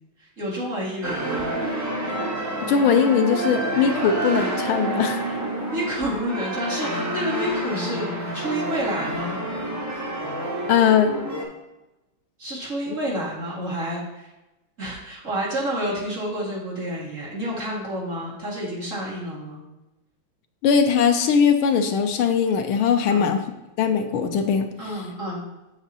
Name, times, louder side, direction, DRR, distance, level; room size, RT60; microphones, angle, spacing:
voice 1, 0.2-1.5 5.7-9.4 12.4-14.3 14.8-19.6 23.1-23.4 24.8-25.4, equal, 40° right, -6 dB, 2.2 m, -29 dB
sound 1, 1.0-11.4, right 1 dB, 20° right, 0.4 m, -28 dB
voice 2, 2.7-5.2 10.7-11.1 12.9-13.0 20.6-23.4 23.8-24.7, left 7 dB, 85° left, 7 dB, 1.5 m, -20 dB
7.3 x 7.0 x 2.8 m, 1.0 s
omnidirectional pair, 2.3 m